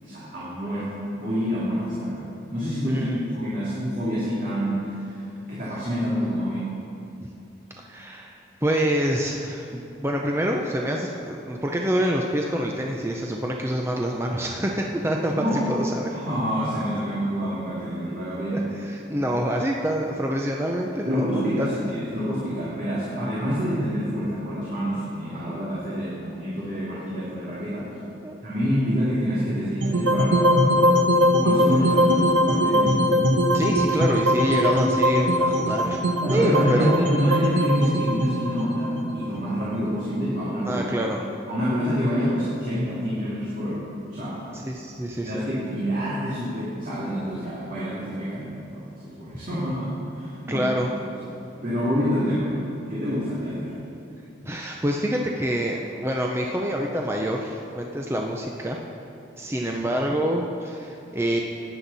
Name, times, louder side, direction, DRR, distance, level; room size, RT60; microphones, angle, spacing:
voice 1, 0.0-2.2 2.5-6.7 15.3-15.6 16.1-18.6 21.1-27.9 28.4-31.0 31.4-32.9 36.2-40.9 41.5-44.4 45.2-50.7 51.2-51.3 51.6-52.5 52.9-53.7, equal, 45° right, -10 dB, 2.5 m, -27 dB
voice 2, 2.9-3.2 7.8-16.1 18.5-21.7 28.2-28.4 33.5-36.0 36.3-37.1 40.6-41.3 44.5-45.4 50.5-50.9 54.4-58.8 59.4-61.4, equal, 15° right, 0 dB, 0.6 m, -26 dB
sound 1, 29.8-40.0, equal, 80° right, 1.0 m, -21 dB
16.0 x 9.9 x 4.1 m, 2.7 s
head